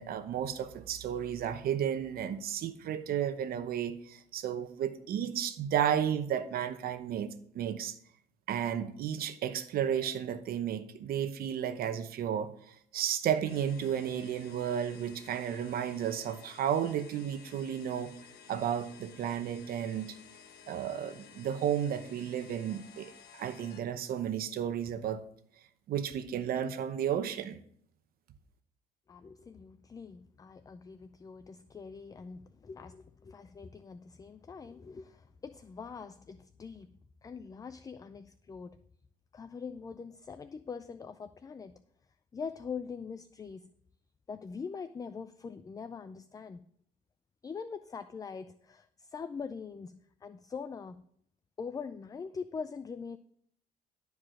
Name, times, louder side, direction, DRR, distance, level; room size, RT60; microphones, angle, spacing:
voice 1, 0.0-7.3 7.5-8.0 8.5-18.1 18.5-20.2 20.7-25.2 25.9-27.6, right 9 dB, 60° right, 0.9 m, -33 dB
sound 1, 13.5-23.8, left 7 dB, 65° left, 1.2 m, -54 dB
voice 2, 29.1-38.8 39.3-41.7 42.3-43.7 44.3-46.6 47.4-51.0 51.6-53.2, left 5 dB, 20° left, 0.4 m, -43 dB
12.5 x 4.8 x 6.3 m
cardioid pair, 110°, 17 cm